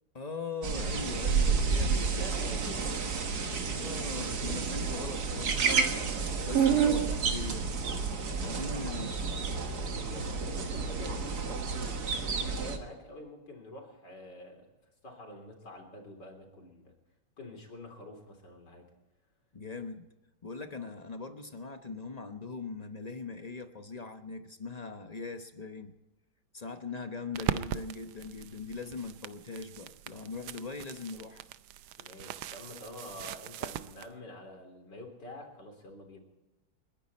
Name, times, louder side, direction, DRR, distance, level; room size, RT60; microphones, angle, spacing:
voice 1, 0.1-2.7 3.7-5.8 6.3-7.7 8.4-9.1 19.5-20.1 20.4-25.9 26.5-31.5, left 4 dB, 30° left, 7 dB, 0.7 m, -41 dB
sound 1, 0.6-12.8, right 5 dB, 55° right, 1.9 m, -30 dB
voice 2, 1.7-3.2 8.4-9.5 9.7-11.6 12.2-14.7 15.0-16.9 17.4-18.8 32.0-36.2, left 1 dB, 60° left, 2 dB, 4.1 m, -47 dB
sound 2, 27.3-34.1, right 12 dB, 90° right, 1.5 m, -40 dB
30.0 x 10.5 x 4.2 m, 1.1 s
omnidirectional pair, 2.1 m